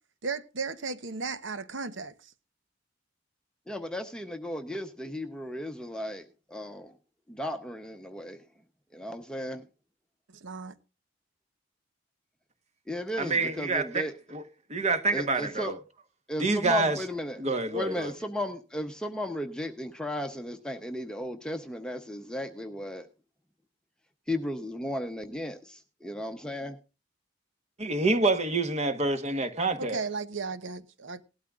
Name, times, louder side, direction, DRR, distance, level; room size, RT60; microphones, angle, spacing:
voice 1, 0.2-2.3 10.4-10.8 29.8-31.2, right 4 dB, 80° right, 0.9 m, -35 dB
voice 2, 3.7-6.9 7.3-8.4 8.9-9.6 12.9-14.1 15.1-15.7 16.3-17.4 17.7-23.1 24.3-26.8, left 1 dB, 5° left, 0.8 m, -35 dB
voice 3, 13.2-14.0 14.3-14.4 14.7-15.8 16.4-17.0 17.4-18.1 27.8-30.0, right 3 dB, 35° right, 1.2 m, -27 dB
18.5 x 12.5 x 2.4 m
head